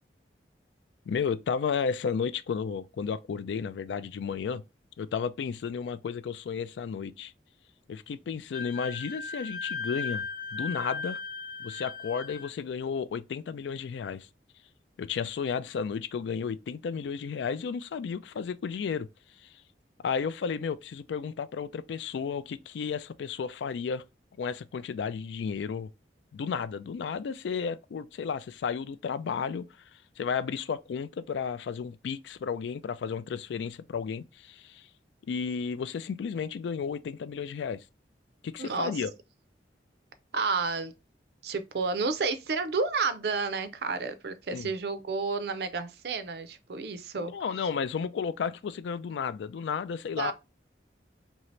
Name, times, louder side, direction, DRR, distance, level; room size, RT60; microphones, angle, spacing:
voice 1, 1.1-4.6 5.0-7.3 7.9-11.2 11.6-14.3 15.0-19.1 19.4-19.6 20.0-24.0 24.4-25.9 26.3-34.9 35.3-37.8 38.4-39.1 44.5-44.7 47.2-50.3, left 6 dB, 85° left, 0.3 m, -33 dB
Wind instrument woodwind instrument, 8.5-12.5, left 4 dB, 50° left, 0.8 m, -37 dB
voice 2, 38.6-39.0 40.3-40.9 41.4-47.3 50.2-50.3, right 4 dB, 65° right, 0.5 m, -31 dB
2.8 x 2.7 x 3.1 m
head